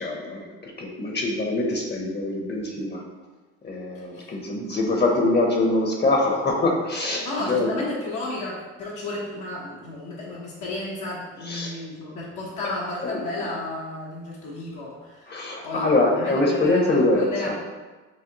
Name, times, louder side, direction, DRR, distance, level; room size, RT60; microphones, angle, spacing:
voice 1, 0.0-3.0 3.6-7.9 11.4-11.9 12.6-13.5 15.3-17.5, left 2 dB, 35° left, 0 dB, 0.8 m, -24 dB
voice 2, 3.9-4.4 7.2-15.9 16.1-17.5, left 2 dB, 75° left, -5 dB, 1.0 m, -33 dB
6.2 x 2.1 x 2.9 m, 1.3 s
cardioid pair, 90°, 30 cm